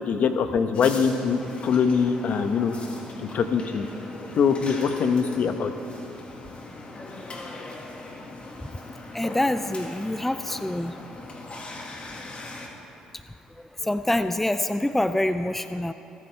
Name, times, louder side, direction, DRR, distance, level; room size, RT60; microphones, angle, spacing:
voice 1, 0.1-2.7 3.3-3.9 4.4-5.7, left 6 dB, 55° left, 8 dB, 1.0 m, -23 dB
sound 1, 0.7-12.7, left 2 dB, 35° left, 2.1 m, -40 dB
voice 2, 9.1-10.9 13.8-15.9, left 1 dB, 5° left, 11 dB, 0.4 m, -26 dB
27.5 x 9.6 x 3.4 m, 3.0 s
hypercardioid pair, 55°, 3 cm